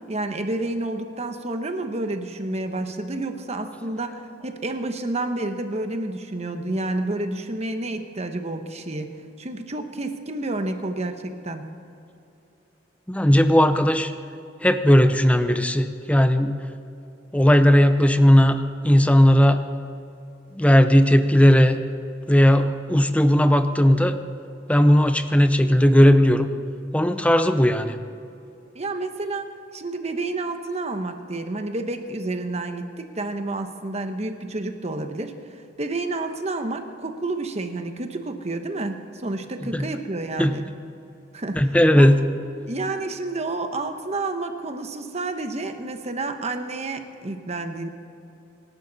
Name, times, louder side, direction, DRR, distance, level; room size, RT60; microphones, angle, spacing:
voice 1, 0.1-9.1 9.4-11.6 28.7-29.5 29.7-40.6 41.3-42.1 42.7-47.9, right 2 dB, 35° right, 7 dB, 1.1 m, -30 dB
voice 2, 13.1-14.1 14.6-16.6 17.3-19.6 20.5-21.8 22.3-24.2 24.7-26.5 26.9-28.0 39.7-39.9 40.4-40.5 41.5-42.2, equal, 10° left, 9 dB, 0.7 m, -17 dB
25.5 x 12.0 x 4.1 m, 2.8 s
head